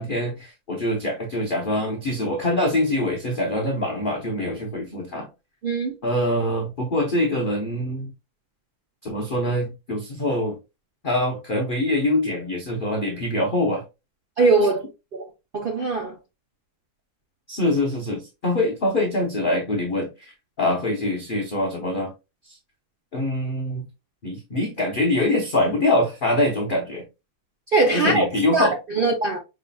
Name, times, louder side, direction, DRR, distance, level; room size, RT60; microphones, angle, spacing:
voice 1, 0.0-5.3 6.0-8.1 9.0-10.6 11.0-13.8 17.5-20.3 20.6-22.1 22.4-22.6 23.1-23.8 24.2-27.1 27.9-28.8, left 1 dB, 40° left, 0.8 m, -24 dB
voice 2, 5.6-5.9 14.4-14.9 15.5-16.1 27.7-28.2 28.5-29.4, right 3 dB, 75° right, 0.4 m, -21 dB
5.3 x 3.3 x 2.3 m
omnidirectional pair, 1.7 m